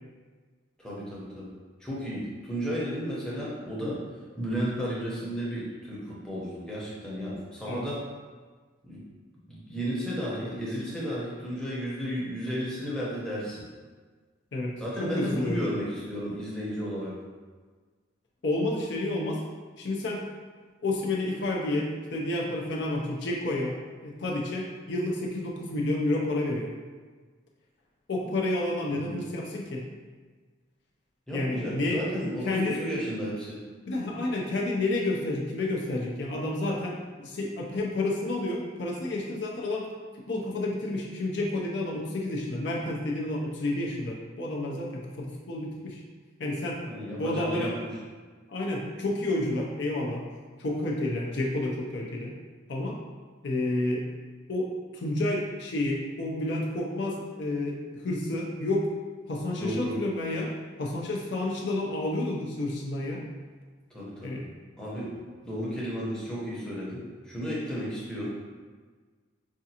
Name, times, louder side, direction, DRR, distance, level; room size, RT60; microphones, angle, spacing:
voice 1, 0.8-1.5 1.8-4.0 4.4-8.0 8.8-9.0 9.5-13.6 14.8-17.1 28.9-29.1 31.3-33.6 46.9-47.9 59.6-60.0 63.9-64.4 64.8-65.2 65.4-68.3, equal, 5° left, -7 dB, 0.8 m, -33 dB
voice 2, 15.0-15.7 18.4-19.4 19.8-20.2 20.8-23.8 24.0-26.7 28.1-29.8 31.3-32.0 32.4-32.8 33.9-39.9 40.1-46.0 46.4-46.9 47.2-47.7 48.5-50.2 50.6-52.3 52.7-53.0 53.4-54.0 54.5-58.9 59.3-60.5 60.8-63.2 64.2-64.4, left 2 dB, 60° left, -2 dB, 0.5 m, -30 dB
5.1 x 2.4 x 2.8 m, 1.5 s
head